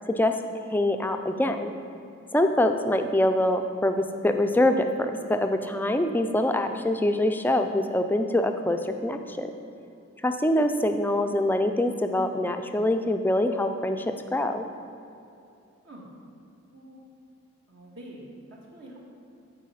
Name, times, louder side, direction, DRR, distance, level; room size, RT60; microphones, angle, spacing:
voice 1, 0.1-1.7 2.3-9.5 10.2-14.7, left 1 dB, 10° left, 6 dB, 0.4 m, -24 dB
voice 2, 17.7-19.0, right 1 dB, 60° right, -3 dB, 1.8 m, -46 dB
13.5 x 4.8 x 5.6 m, 2.7 s
head